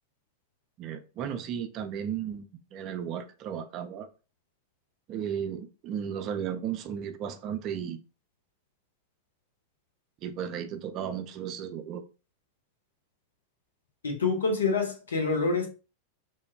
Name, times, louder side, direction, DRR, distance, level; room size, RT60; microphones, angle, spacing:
voice 1, 0.8-4.1 5.1-8.0 10.2-12.0, right 8 dB, 35° right, 0.3 m, -35 dB
voice 2, 14.0-15.7, left 4 dB, 70° left, 0.7 m, -26 dB
3.3 x 2.1 x 2.2 m
figure-of-eight pair, 90°, 0 cm